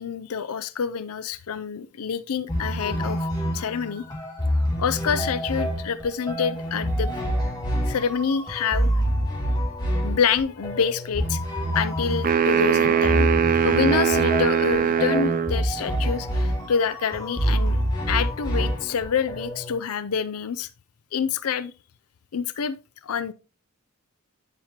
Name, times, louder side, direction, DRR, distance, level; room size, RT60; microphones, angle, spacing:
voice 1, 0.0-3.3 3.5-4.0 4.8-7.1 7.9-8.9 10.0-11.4 11.7-17.8 18.1-20.7 21.1-21.7 22.3-22.8 23.0-23.3, left 6 dB, 80° left, 0.5 m, -27 dB
sound 1, 2.5-19.8, equal, 20° left, 1.9 m, -27 dB
sound 2, 12.2-15.6, right 8 dB, 40° right, 0.3 m, -21 dB
9.9 x 5.1 x 2.9 m
head